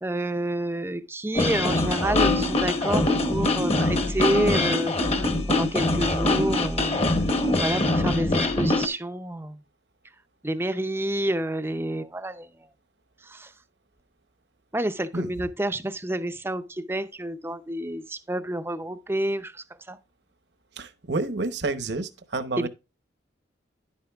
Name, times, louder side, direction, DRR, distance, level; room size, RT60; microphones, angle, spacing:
voice 1, 0.0-7.0 7.6-9.6 10.4-12.5 13.2-13.5 14.7-20.0 22.6-22.7, right 1 dB, 10° right, 0.5 m, -29 dB
sound 1, 1.3-8.9, left 2 dB, 30° left, 1.0 m, -23 dB
voice 2, 20.7-22.7, right 3 dB, 65° right, 0.9 m, -29 dB
11.0 x 8.5 x 2.3 m
head